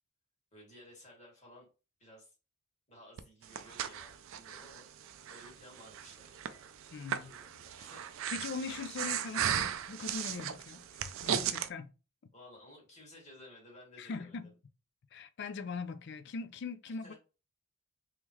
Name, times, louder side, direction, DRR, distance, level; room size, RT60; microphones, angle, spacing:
voice 1, 0.5-1.7 2.0-2.3 2.9-8.2 12.3-14.5 16.9-17.1, left 1 dB, 30° left, 2.0 m, -56 dB
Breathing, 3.2-11.7, right 9 dB, 65° right, 0.4 m, -37 dB
voice 2, 6.9-7.3 8.3-11.9 14.0-14.5 15.1-17.1, left 4 dB, 50° left, 0.4 m, -41 dB
3.7 x 3.1 x 3.0 m
head